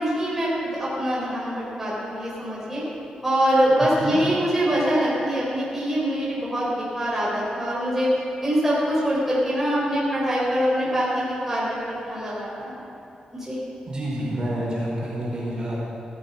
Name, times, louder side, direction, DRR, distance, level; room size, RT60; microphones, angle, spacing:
voice 1, 0.0-2.8 3.2-8.1 8.4-12.7 13.3-13.6, equal, 10° right, -8 dB, 3.9 m, -24 dB
voice 2, 13.9-15.9, right 1 dB, 30° right, -5 dB, 4.5 m, -28 dB
17.0 x 12.0 x 5.6 m, 2.8 s
wide cardioid pair, 140°, 3 cm